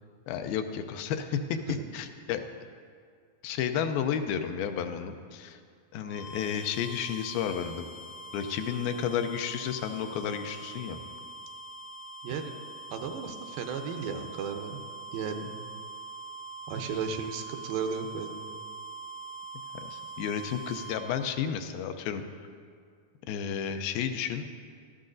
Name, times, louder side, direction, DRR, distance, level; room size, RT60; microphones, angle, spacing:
voice 1, 0.3-2.4 3.4-5.6 5.9-7.9 8.3-11.0 19.8-22.2 23.3-24.4, left 8 dB, 90° left, 7 dB, 2.5 m, -32 dB
sound 1, 6.0-21.3, right 3 dB, 75° left, 1.7 m, -43 dB
voice 2, 12.2-12.5 12.9-14.8 15.1-15.6 16.7-18.5, right 6 dB, 85° right, 5 dB, 2.5 m, -35 dB
16.5 x 13.0 x 2.6 m, 2.1 s
omnidirectional pair, 4.1 m